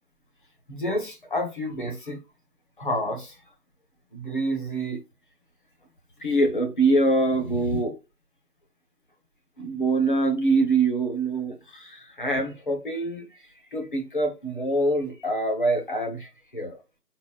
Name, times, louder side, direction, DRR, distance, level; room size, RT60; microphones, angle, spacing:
voice 1, 0.7-2.2 2.8-3.4 4.1-5.0 6.2-8.0 9.6-13.3 13.7-16.8, right 2 dB, 30° left, 1.0 m, -25 dB
4.2 x 4.1 x 2.4 m
figure-of-eight pair, 155°, 47 cm